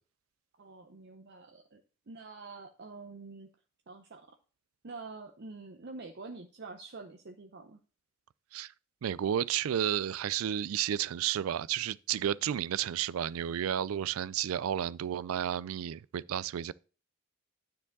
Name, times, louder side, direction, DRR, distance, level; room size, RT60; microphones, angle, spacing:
voice 1, 0.6-1.8 2.1-3.5 3.9-4.3 4.8-7.8, right 3 dB, 55° right, 0.7 m, -46 dB
voice 2, 9.0-16.7, right 10 dB, 85° right, 0.4 m, -32 dB
9.8 x 4.8 x 3.9 m
head